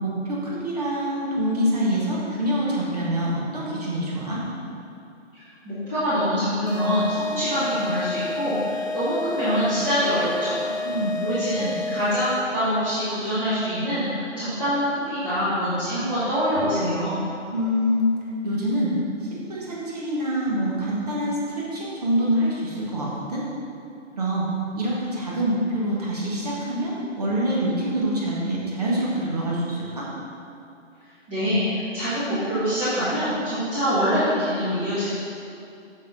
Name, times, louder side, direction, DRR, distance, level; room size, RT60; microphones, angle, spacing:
voice 1, 0.0-4.4 10.8-11.2 11.5-11.8 17.5-18.1 18.4-18.9 19.2-23.4 24.1-24.5 24.7-30.1, equal, 30° right, -5 dB, 1.6 m, -25 dB
voice 2, 5.3-10.7 11.2-17.2 31.3-35.1, equal, 10° right, -18 dB, 1.3 m, -25 dB
sound 1, 6.7-12.6, left 3 dB, 35° left, 1.3 m, -30 dB
6.7 x 6.2 x 5.6 m, 2.6 s
figure-of-eight pair, 165°, 37 cm